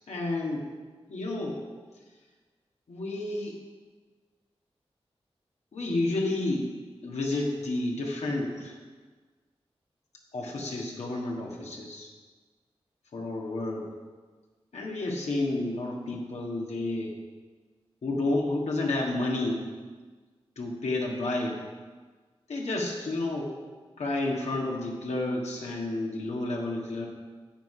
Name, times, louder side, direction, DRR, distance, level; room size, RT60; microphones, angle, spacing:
voice 1, 0.1-0.7 1.1-1.6 2.9-3.6 5.7-6.7 7.0-8.8 10.3-12.1 13.1-13.9 14.7-17.1 18.0-19.6 20.6-21.6 22.5-23.6 24.0-27.1, left 2 dB, 90° left, -2 dB, 1.8 m, -30 dB
10.0 x 8.4 x 5.0 m, 1.4 s
cardioid pair, 40°, 11 cm